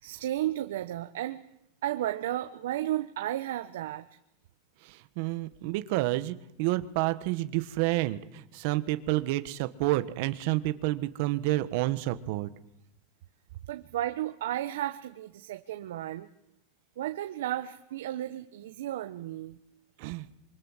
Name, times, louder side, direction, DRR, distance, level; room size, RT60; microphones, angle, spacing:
voice 1, 0.0-1.4 1.8-4.0 13.7-16.3 17.0-19.6, right 13 dB, 90° right, 7 dB, 1.2 m, -33 dB
voice 2, 4.8-12.5 20.0-20.3, right 17 dB, 45° right, 11 dB, 1.4 m, -29 dB
26.0 x 24.5 x 7.5 m, 0.82 s
supercardioid pair, 180°, 0 cm